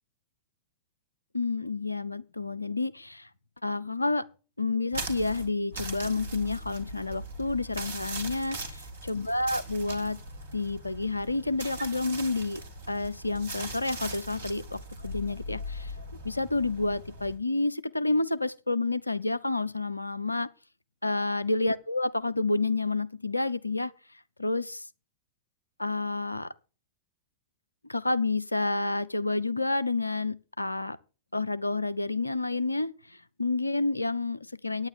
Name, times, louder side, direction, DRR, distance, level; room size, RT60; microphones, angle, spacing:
voice 1, 1.3-3.3 3.6-4.2 4.6-10.2 10.5-12.6 12.9-15.9 16.2-20.5 21.0-23.9 24.4-24.9 25.8-26.5 27.9-31.0 31.3-34.9, left 3 dB, 85° left, 0.6 m, -29 dB
sound 1, 4.9-17.4, right 1 dB, 65° right, 2.1 m, -40 dB
9.3 x 8.9 x 6.6 m
figure-of-eight pair, 90°, 0 cm